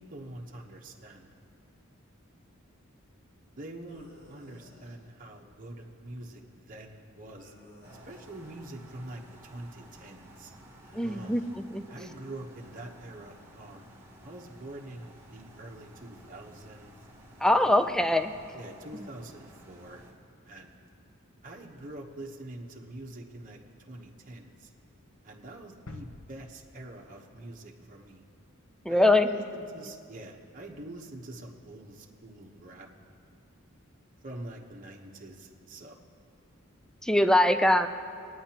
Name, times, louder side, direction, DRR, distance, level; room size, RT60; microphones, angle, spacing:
voice 1, 0.0-1.3 3.6-7.5 8.1-10.5 11.0-11.4 11.9-13.9 14.2-16.9 17.6-17.9 18.5-20.0 20.4-20.8 21.4-24.7 25.2-28.2 28.9-32.9 34.2-36.0, right 1 dB, 40° right, -1 dB, 1.0 m, -45 dB
sound 1, 3.9-5.0 7.4-8.4 10.8-11.5, left 1 dB, 50° left, 3.4 m, -56 dB
sound 2, 7.8-20.1, right 1 dB, 15° right, 1.7 m, -54 dB
voice 2, 10.9-11.8 17.4-18.3 28.8-29.3 37.0-37.9, left 1 dB, 5° left, 8 dB, 0.4 m, -23 dB
sound 3, 25.9-27.8 28.2-28.3, left 2 dB, 70° left, 0.7 m, -49 dB
22.5 x 9.3 x 2.9 m, 2.4 s
head